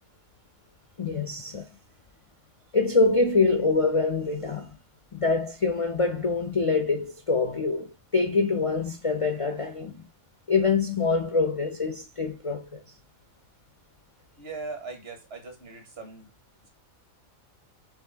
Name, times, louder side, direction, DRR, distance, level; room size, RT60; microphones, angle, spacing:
voice 1, 1.0-1.7 2.7-4.7 5.1-10.0 10.5-12.8, left 4 dB, 40° left, 0.4 m, -25 dB
voice 2, 14.4-16.3, right 3 dB, 50° right, 1.4 m, -39 dB
5.0 x 2.6 x 3.9 m
omnidirectional pair, 1.4 m